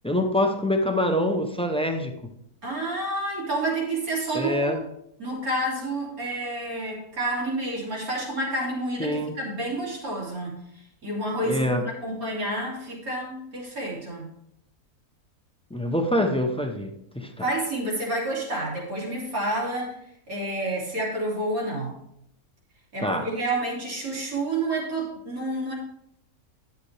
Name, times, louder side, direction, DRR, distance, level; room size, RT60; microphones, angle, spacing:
voice 1, 0.0-2.1 4.3-4.8 9.0-9.3 11.4-11.8 15.7-17.5 23.0-23.3, left 1 dB, 10° left, 4 dB, 0.3 m, -25 dB
voice 2, 2.6-4.8 5.2-10.6 11.0-14.3 17.4-19.9 20.3-21.9 22.9-25.7, right 1 dB, 75° right, -4 dB, 3.3 m, -29 dB
11.0 x 6.8 x 3.3 m, 0.76 s
omnidirectional pair, 1.6 m